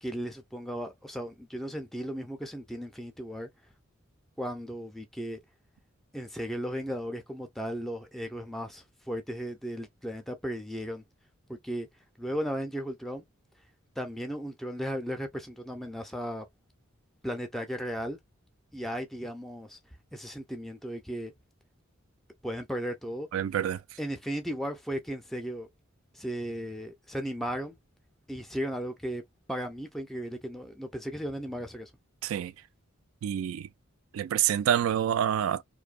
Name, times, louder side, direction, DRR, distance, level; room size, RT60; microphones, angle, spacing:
voice 1, 0.0-3.5 4.4-5.4 6.1-11.0 11.5-11.9 12.2-13.2 14.0-16.5 17.2-18.2 18.7-19.8 20.1-21.3 22.4-23.3 24.0-25.7 26.1-27.8 28.3-29.2 29.5-31.9, equal, ahead, 0.4 m, -35 dB
voice 2, 23.3-23.8 32.2-32.5 33.2-33.7 34.1-35.6, right 10 dB, 80° right, 0.3 m, -27 dB
2.6 x 2.1 x 2.3 m
head